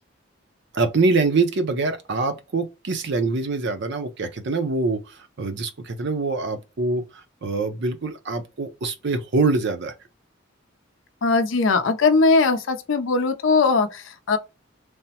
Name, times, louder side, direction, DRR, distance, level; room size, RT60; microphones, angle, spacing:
voice 1, 0.7-9.9, right 3 dB, 60° right, 0.5 m, -24 dB
voice 2, 11.2-14.4, left 4 dB, 70° left, 0.5 m, -20 dB
3.3 x 2.0 x 2.7 m
head